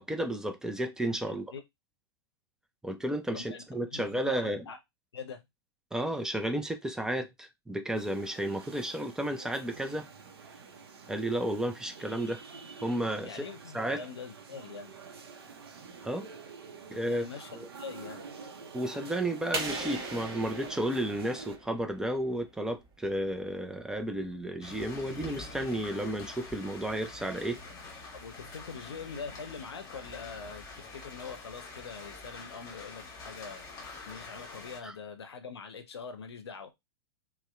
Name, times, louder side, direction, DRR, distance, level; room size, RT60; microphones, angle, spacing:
voice 1, 0.0-1.5 2.8-4.6 5.9-10.1 11.1-12.4 12.8-13.4 13.7-14.0 16.0-16.3 16.9-17.2 17.5-17.7 18.7-27.6 34.8-34.9, right 1 dB, 5° right, 0.3 m, -32 dB
voice 2, 1.3-1.6 3.3-3.6 3.9-4.8 5.1-5.4 13.2-14.9 16.9-17.5 17.8-18.2 28.1-33.6 34.1-36.7, left 5 dB, 75° left, 0.6 m, -43 dB
sound 1, 7.9-21.6, right 5 dB, 65° right, 0.5 m, -48 dB
sound 2, 19.5-22.2, right 3 dB, 30° right, 1.0 m, -38 dB
sound 3, 24.6-34.8, left 3 dB, 25° left, 1.0 m, -46 dB
2.7 x 2.0 x 2.2 m
figure-of-eight pair, 100°, 14 cm